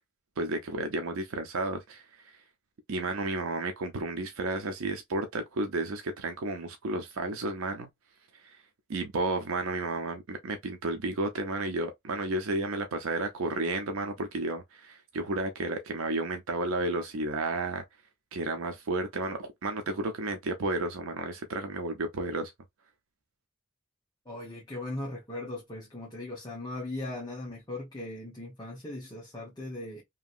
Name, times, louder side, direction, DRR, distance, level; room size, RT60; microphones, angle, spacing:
voice 1, 0.4-2.0 2.9-7.9 8.4-8.6 8.9-17.8 18.3-22.5, right 2 dB, 90° right, 0.5 m, -32 dB
voice 2, 24.3-30.0, left 2 dB, 20° left, 0.9 m, -38 dB
2.8 x 2.7 x 2.4 m
head